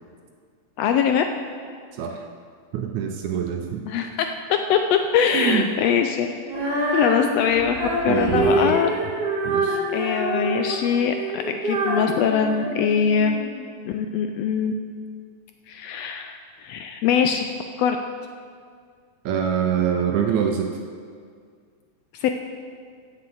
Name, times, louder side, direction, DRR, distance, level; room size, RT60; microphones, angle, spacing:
voice 1, 0.8-1.2 3.9-6.3 6.5-6.6 6.9-7.8 8.0-8.9 9.9-13.3 13.9-14.7 15.7-17.5 17.8-18.0 22.1-22.3, left 7 dB, 80° left, 6 dB, 1.5 m, -22 dB
voice 2, 2.7-3.8 5.3-5.7 8.1-8.8 9.4-9.8 19.3-20.7, right 8 dB, 80° right, 3 dB, 2.1 m, -24 dB
Female singing, 6.5-13.5, right 1 dB, 20° right, 2.1 m, -26 dB
9.7 x 7.7 x 7.9 m, 2.1 s
omnidirectional pair, 3.4 m